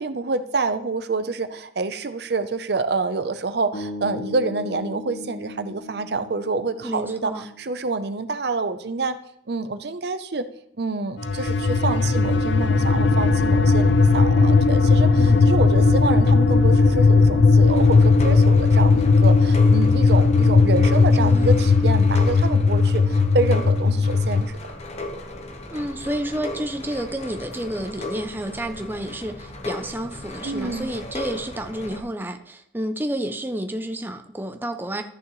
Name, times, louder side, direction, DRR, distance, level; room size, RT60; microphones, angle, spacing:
voice 1, 0.0-9.2 9.5-10.5 10.8-24.6 30.4-30.9, right 3 dB, 65° right, 0.7 m, -27 dB
sound 1, 3.7-7.9, left 2 dB, 65° left, 1.3 m, -37 dB
voice 2, 6.8-7.5 15.2-15.5 21.2-21.6 25.7-35.0, right 1 dB, 10° right, 0.6 m, -30 dB
sound 2, 11.2-24.5, left 4 dB, 80° left, 0.6 m, -17 dB
sound 3, 17.7-32.0, left 1 dB, 40° left, 1.1 m, -36 dB
13.5 x 6.7 x 3.1 m
head